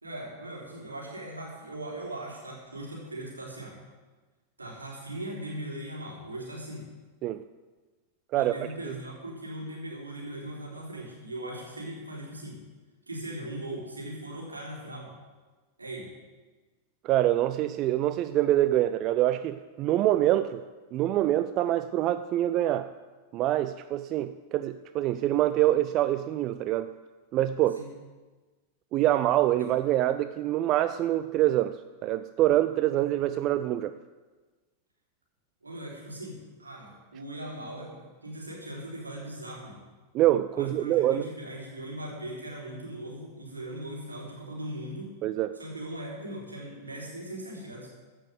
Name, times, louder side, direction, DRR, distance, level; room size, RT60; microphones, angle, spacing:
voice 1, 0.0-3.8 4.6-6.9 8.3-12.6 13.1-15.1 15.8-16.1 27.7-27.9 35.6-39.8 40.5-45.2 45.5-47.9, right 1 dB, 80° right, -2 dB, 3.6 m, -39 dB
voice 2, 17.0-20.6 20.9-22.9 23.3-26.9 27.3-27.8 28.9-31.8 32.0-33.9 40.1-41.3 45.2-45.6, right 13 dB, 35° right, 12 dB, 0.4 m, -25 dB
14.5 x 6.2 x 8.0 m, 1.3 s
figure-of-eight pair, 90°, 0 cm